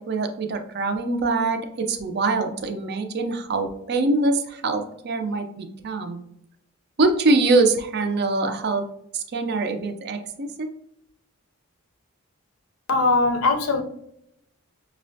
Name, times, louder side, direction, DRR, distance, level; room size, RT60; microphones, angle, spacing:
voice 1, 0.0-6.2 7.0-8.9 9.1-10.7, right 3 dB, 45° right, 6 dB, 0.4 m, -24 dB
voice 2, 12.9-13.8, left 3 dB, 70° left, 5 dB, 0.5 m, -20 dB
5.3 x 2.1 x 2.6 m, 0.76 s
head